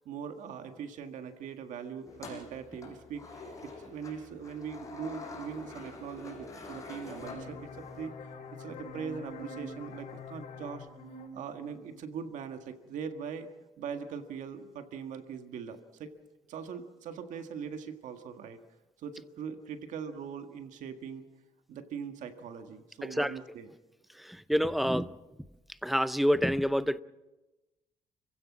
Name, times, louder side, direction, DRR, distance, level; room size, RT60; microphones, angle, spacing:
voice 1, 0.1-10.9 11.2-13.5 13.8-16.1 16.5-18.6 19.0-21.3 21.7-23.7, right 7 dB, 80° right, 1.8 m, -41 dB
sound 1, 2.1-8.1, left 3 dB, 25° left, 5.7 m, -46 dB
sound 2, 7.2-12.6, left 2 dB, 80° left, 5.9 m, -45 dB
voice 2, 23.0-23.3 24.2-25.1 25.8-27.0, equal, ahead, 0.6 m, -27 dB
30.0 x 16.0 x 6.1 m
cardioid pair, 130°, 13 cm